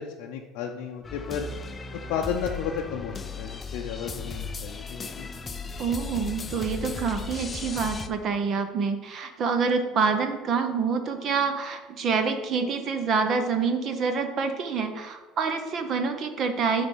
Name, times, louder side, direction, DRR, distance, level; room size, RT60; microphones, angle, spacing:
voice 1, 0.0-1.5 2.1-5.4, left 7 dB, 60° left, 0 dB, 0.6 m, -33 dB
sound 1, 1.0-8.1, left 4 dB, 15° left, 0.4 m, -36 dB
voice 2, 5.8-16.9, right 5 dB, 30° right, 7 dB, 0.7 m, -27 dB
9.4 x 3.4 x 5.5 m, 1.3 s
cardioid pair, 175°, 0 cm